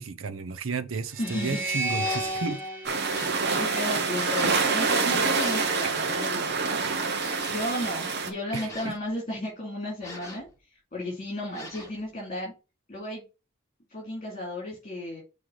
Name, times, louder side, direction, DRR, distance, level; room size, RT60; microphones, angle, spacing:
voice 1, 0.0-2.6 5.8-6.1 8.5-8.9, right 4 dB, 80° right, 0.7 m, -33 dB
sound 1, 1.1-4.4, right 1 dB, 10° right, 1.7 m, -33 dB
voice 2, 1.2-1.6 3.6-6.8 7.5-12.5 12.9-13.2 13.9-15.2, left 1 dB, 35° left, 2.7 m, -34 dB
sound 2, 2.0-2.4 3.1-3.4 4.3-4.6 5.3-5.7 7.2-7.7 8.5-9.1 10.0-10.5 11.5-12.0, equal, 15° left, 2.4 m, -41 dB
sound 3, 2.8-8.3, right 4 dB, 55° right, 1.2 m, -26 dB
6.3 x 3.3 x 5.6 m
head